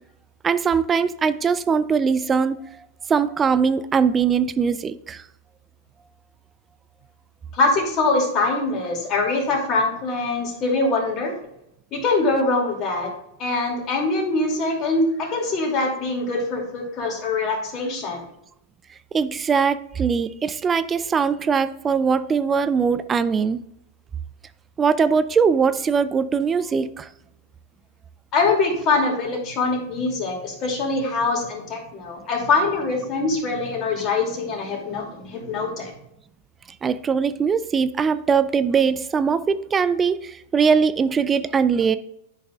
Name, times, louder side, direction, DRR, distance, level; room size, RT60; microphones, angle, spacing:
voice 1, 0.4-2.6 3.1-5.2 19.1-23.6 24.8-27.1 36.8-42.0, right 6 dB, 20° right, 13 dB, 0.4 m, -21 dB
voice 2, 7.5-11.3 11.9-13.1 13.4-18.2 28.3-35.9, left 3 dB, 40° left, 0 dB, 2.7 m, -23 dB
11.0 x 5.4 x 2.4 m, 0.81 s
hypercardioid pair, 100°, 0 cm